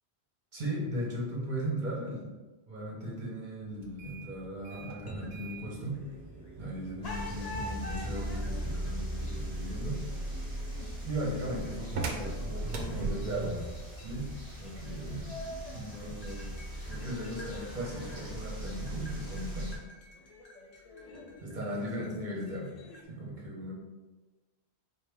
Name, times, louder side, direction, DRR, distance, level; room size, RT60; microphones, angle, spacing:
voice 1, 0.5-2.4 2.7-6.0 6.6-10.0 10.4-10.5 11.0-13.7 14.0-14.3 14.6-15.4 15.7-16.5 16.8-19.7 21.4-22.8 23.1-23.7, right 1 dB, 45° right, -4 dB, 1.1 m, -37 dB
sound 1, 3.8-13.7, right 4 dB, 75° right, 0.9 m, -42 dB
sound 2, 4.7-6.6 7.0-23.0, left 2 dB, 40° left, 0.7 m, -48 dB
sound 3, 7.0-19.8, equal, 20° right, 1.1 m, -39 dB
4.4 x 2.9 x 3.4 m, 1.2 s
omnidirectional pair, 1.1 m